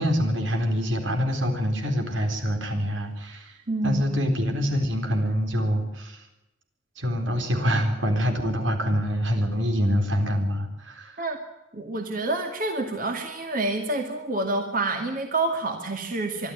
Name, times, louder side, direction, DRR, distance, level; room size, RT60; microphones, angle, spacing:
voice 1, 0.0-3.6 3.8-6.3 7.0-11.2, equal, 85° right, 5 dB, 4.1 m, -25 dB
voice 2, 3.7-4.0 11.2-11.4 11.7-16.5, right 2 dB, 45° right, 4 dB, 2.3 m, -28 dB
24.5 x 12.0 x 9.4 m, 0.98 s
head